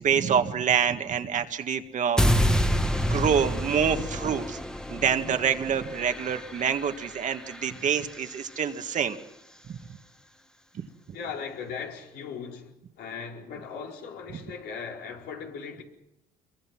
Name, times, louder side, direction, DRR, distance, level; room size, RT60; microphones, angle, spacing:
voice 1, 0.0-2.5 2.9-4.6 4.9-9.2 9.7-9.8 10.7-10.9, right 7 dB, 50° right, 1.9 m, -26 dB
sound 1, 2.2-8.3, equal, 5° left, 1.6 m, -28 dB
voice 2, 11.1-12.7 13.0-15.8, left 6 dB, 75° left, 4.8 m, -38 dB
26.5 x 23.0 x 6.1 m
cardioid pair, 110°, 17 cm